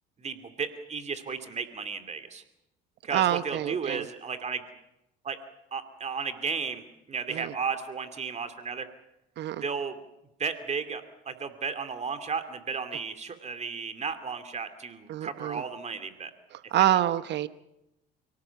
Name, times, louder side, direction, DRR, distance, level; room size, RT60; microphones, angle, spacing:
voice 1, 0.2-2.4 3.0-4.6 5.2-5.4 5.7-6.8 7.1-8.9 9.6-10.0 10.4-16.3 16.9-17.0, right 5 dB, 35° right, 9 dB, 2.7 m, -34 dB
voice 2, 3.1-4.1 7.3-7.5 9.4-9.6 15.1-15.6 16.5-17.5, right 12 dB, 55° right, 13 dB, 1.0 m, -27 dB
29.5 x 18.0 x 7.2 m, 0.88 s
supercardioid pair, 95°, 21 cm